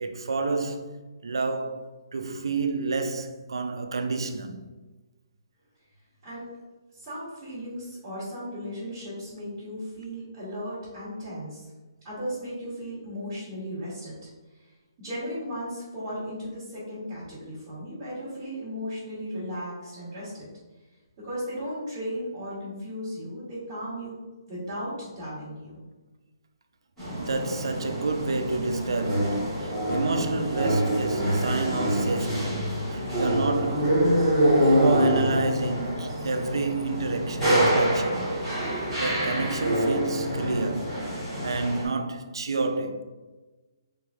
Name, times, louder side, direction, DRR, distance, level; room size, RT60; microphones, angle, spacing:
voice 1, 0.0-4.7 27.1-34.0 34.5-38.4 39.0-41.0 41.4-43.0, right 3 dB, 90° right, 0.4 m, -29 dB
voice 2, 6.9-11.7 12.0-14.3 14.6-14.7 15.0-20.5 21.2-24.2 24.5-25.8, equal, 15° right, 1.1 m, -36 dB
sound 1, 27.0-41.9, equal, 5° left, 1.1 m, -26 dB
3.5 x 3.1 x 2.4 m
hypercardioid pair, 175°, 2 cm